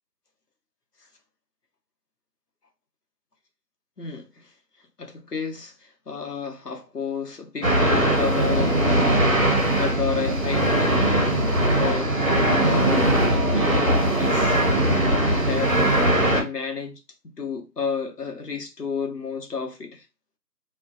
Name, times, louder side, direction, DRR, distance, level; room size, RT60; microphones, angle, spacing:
voice 1, 5.0-5.7 6.1-11.1 11.7-12.2 12.6-14.6 15.1-15.8 16.3-17.0 17.4-20.0, left 5 dB, 65° left, 0.8 m, -32 dB
sound 1, 7.6-16.4, right 1 dB, 55° right, 0.7 m, -20 dB
2.3 x 2.2 x 2.5 m
figure-of-eight pair, 180°, 50 cm